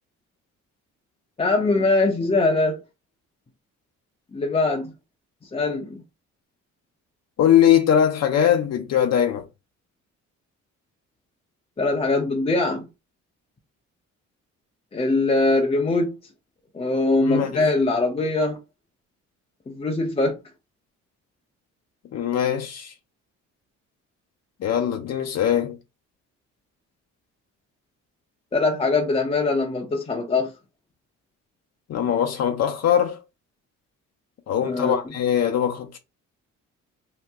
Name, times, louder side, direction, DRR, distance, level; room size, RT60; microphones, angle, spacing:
voice 1, 1.4-2.8 4.3-4.9 5.5-6.0 11.8-12.9 14.9-16.2 16.7-18.6 19.7-20.4 28.5-30.5 34.6-35.0, left 2 dB, 20° left, 0.6 m, -22 dB
voice 2, 7.4-9.4 17.2-17.6 22.1-22.9 24.6-25.8 31.9-33.2 34.5-36.0, left 9 dB, 55° left, 0.6 m, -21 dB
2.8 x 2.5 x 3.5 m
cardioid pair, 90°, 30 cm